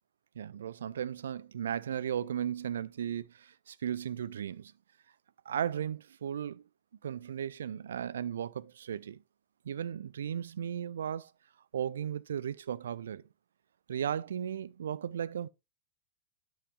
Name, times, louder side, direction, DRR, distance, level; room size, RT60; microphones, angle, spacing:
voice 1, 0.4-4.7 5.5-6.6 7.0-9.2 9.7-11.3 11.7-13.2 13.9-15.5, right 9 dB, 65° right, 0.3 m, -36 dB
11.0 x 6.2 x 2.3 m
figure-of-eight pair, 90°, 0 cm